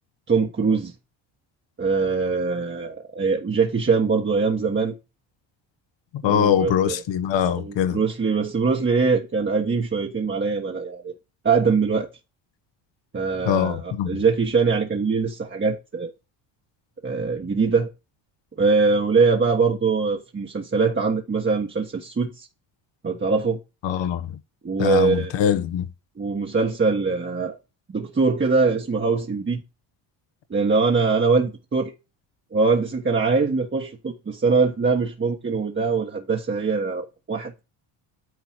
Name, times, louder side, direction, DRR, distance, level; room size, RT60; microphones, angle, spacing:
voice 1, 0.3-0.9 1.8-4.9 6.2-6.9 7.6-11.1 11.4-12.1 13.1-16.1 17.0-17.9 18.6-22.5 23.0-23.6 24.6-25.3 26.2-27.6 27.9-29.6 30.5-31.9 32.5-37.5, right 4 dB, 25° right, 1.4 m, -22 dB
voice 2, 6.1-8.0 13.4-14.2 23.8-24.4 24.8-25.9, left 9 dB, 60° left, 1.4 m, -23 dB
9.7 x 4.0 x 4.4 m
supercardioid pair, 80°, 49 cm